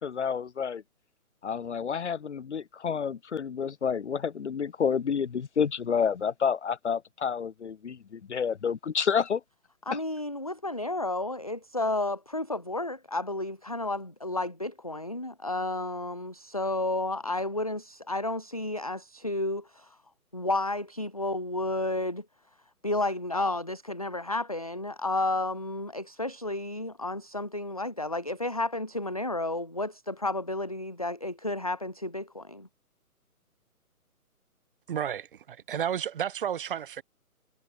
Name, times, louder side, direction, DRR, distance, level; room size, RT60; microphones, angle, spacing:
voice 1, 0.0-0.8 1.4-9.4, left 7 dB, 50° left, 2.1 m, -29 dB
voice 2, 9.9-20.0 20.3-22.2 22.8-32.7, left 2 dB, 25° left, 0.4 m, -31 dB
voice 3, 34.9-37.0, right 9 dB, 35° right, 2.4 m, -32 dB
figure-of-eight pair, 140°, 44 cm